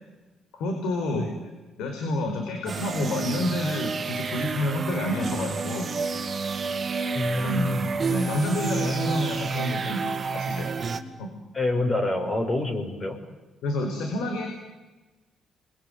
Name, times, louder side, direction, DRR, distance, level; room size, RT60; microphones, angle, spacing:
voice 1, 0.5-1.5 1.8-5.9 7.4-7.7 8.1-10.1 10.3-10.7 11.2-11.3 13.6-14.5, left 1 dB, 85° left, 4 dB, 4.5 m, -29 dB
sound 1, 2.7-11.0, right 4 dB, 35° right, 2.4 m, -29 dB
voice 2, 7.1-7.9 11.5-13.2, left 2 dB, 30° left, 5 dB, 6.6 m, -27 dB
28.5 x 22.0 x 9.4 m, 1.2 s
cardioid pair, 90°, 0 cm